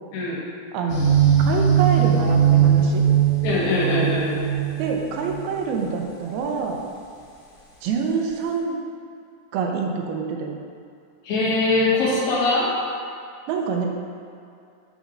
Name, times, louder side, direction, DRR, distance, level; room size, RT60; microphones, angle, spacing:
voice 1, 0.7-1.1 1.5-3.1 4.8-6.8 7.8-8.8 9.5-10.6 13.5-13.9, right 5 dB, 80° right, 1 dB, 2.4 m, -26 dB
sound 1, 0.9-5.5, right 8 dB, 60° left, 2.5 m, -19 dB
voice 2, 3.4-4.4 11.3-12.8, left 2 dB, 80° left, -7 dB, 3.7 m, -22 dB
9.2 x 6.3 x 2.6 m, 2.4 s
omnidirectional pair, 4.8 m